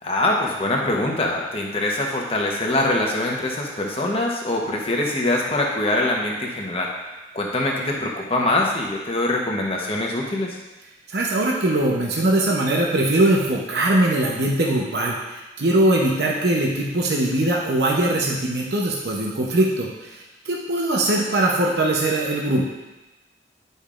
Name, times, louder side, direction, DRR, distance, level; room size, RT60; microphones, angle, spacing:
voice 1, 0.0-6.9 7.3-10.6, left 1 dB, 30° left, -1 dB, 1.0 m, -23 dB
voice 2, 11.1-15.2 15.6-22.6, right 1 dB, 65° right, -2 dB, 0.8 m, -21 dB
10.0 x 5.3 x 2.5 m, 1.1 s
head